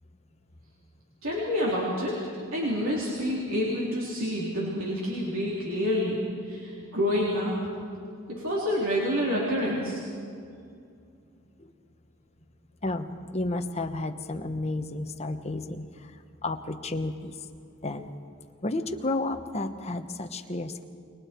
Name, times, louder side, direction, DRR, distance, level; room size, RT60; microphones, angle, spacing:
voice 1, 1.2-2.2 2.5-6.2 6.5-7.6 8.3-10.0, equal, 80° right, -5 dB, 3.6 m, -28 dB
voice 2, 12.8-16.1 16.4-17.3 17.8-18.1 18.6-20.8, left 2 dB, 30° left, 6 dB, 1.1 m, -32 dB
29.0 x 23.0 x 4.5 m, 2.4 s
head